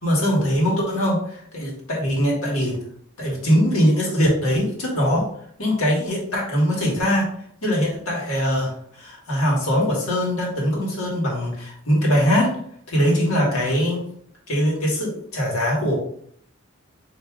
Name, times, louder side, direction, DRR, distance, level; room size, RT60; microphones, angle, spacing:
voice 1, 0.0-2.8 3.2-5.3 5.6-7.3 7.6-12.5 12.9-14.0 14.5-15.9, equal, 80° left, -3 dB, 1.8 m, -21 dB
3.6 x 3.1 x 4.7 m, 0.65 s
head